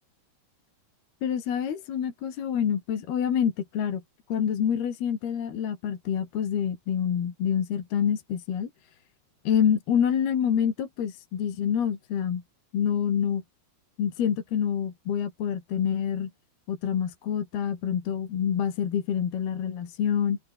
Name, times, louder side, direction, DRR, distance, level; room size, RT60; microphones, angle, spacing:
voice 1, 1.2-4.0 4.3-8.7 9.4-12.4 12.7-13.4 14.0-16.3 16.7-20.4, left 8 dB, 55° left, 4.5 m, -27 dB
omnidirectional pair, 5.7 m